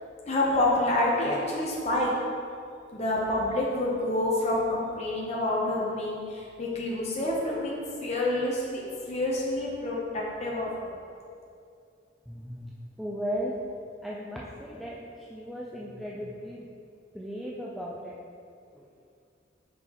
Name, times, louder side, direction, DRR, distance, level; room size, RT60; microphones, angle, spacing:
voice 1, 0.3-2.1 2.9-11.0, left 1 dB, 35° left, -4 dB, 0.8 m, -28 dB
voice 2, 12.3-12.7 13.0-13.6 14.0-16.7 17.1-18.2 18.7-18.8, equal, ahead, -5 dB, 0.4 m, -36 dB
5.9 x 5.5 x 3.0 m, 2.4 s
head